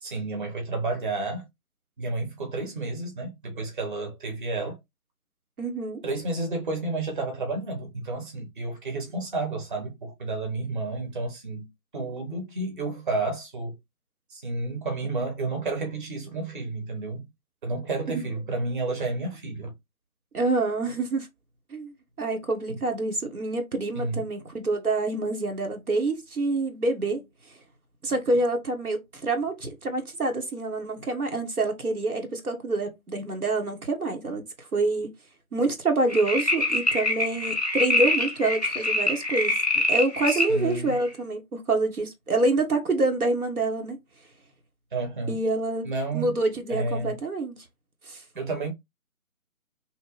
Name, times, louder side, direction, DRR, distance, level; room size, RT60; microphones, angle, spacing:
voice 1, 0.0-1.4 2.0-4.8 6.0-11.7 11.9-13.8 14.3-17.3 17.6-19.7 22.7-22.8 23.9-24.3 40.3-41.0 44.9-45.4 45.8-46.4 46.7-47.2 48.4-48.7, right 3 dB, 35° right, 0.9 m, -31 dB
voice 2, 5.6-6.0 18.1-18.2 20.3-21.3 21.7-21.9 22.2-27.2 28.0-35.1 35.5-39.5 39.9-44.0 45.3-45.9 46.1-47.6 48.1-48.2, right 2 dB, 85° right, 1.1 m, -27 dB
sound 1, 36.1-40.5 41.1-41.2, left 2 dB, 30° left, 0.5 m, -25 dB
2.9 x 2.1 x 3.7 m
figure-of-eight pair, 150°, 43 cm